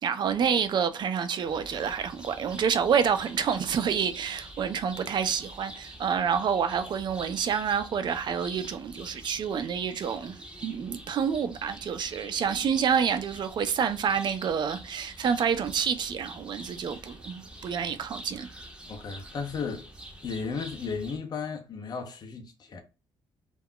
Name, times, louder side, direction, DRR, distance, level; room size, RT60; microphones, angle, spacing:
voice 1, 0.0-18.5, right 7 dB, 50° right, 0.4 m, -28 dB
sound 1, 1.4-21.2, right 1 dB, 10° right, 0.7 m, -47 dB
voice 2, 18.9-19.9 20.2-22.8, left 5 dB, 45° left, 0.6 m, -34 dB
2.3 x 2.0 x 3.7 m
cardioid pair, 110°, 10 cm